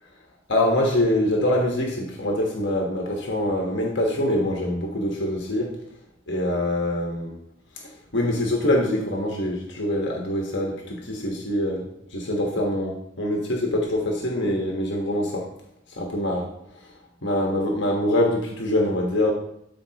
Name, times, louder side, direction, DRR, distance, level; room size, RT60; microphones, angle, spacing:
voice 1, 0.5-5.7 6.3-7.3 7.8-15.5 16.0-16.5 17.2-19.3, left 1 dB, 60° left, 0 dB, 1.4 m, -24 dB
13.0 x 4.7 x 3.0 m, 0.76 s
head